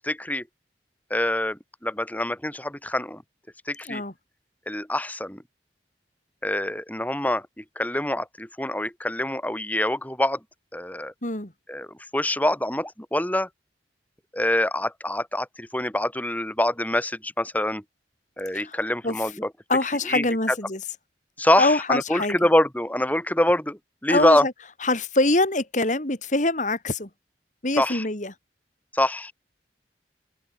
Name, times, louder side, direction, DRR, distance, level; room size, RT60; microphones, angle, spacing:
voice 1, 0.0-0.4 1.1-3.2 3.7-4.0 4.7-5.4 6.4-10.4 10.7-11.1 11.7-11.9 12.1-13.5 14.3-17.8 18.4-19.5 20.1-20.6 21.4-24.5 27.8-28.0 28.9-29.3, left 1 dB, 10° left, 3.7 m, -25 dB
voice 2, 11.2-11.5 18.5-18.8 19.0-19.2 19.7-20.8 21.6-22.4 24.1-24.5 24.8-27.1 27.6-28.3, left 2 dB, 45° left, 3.0 m, -24 dB
open air
head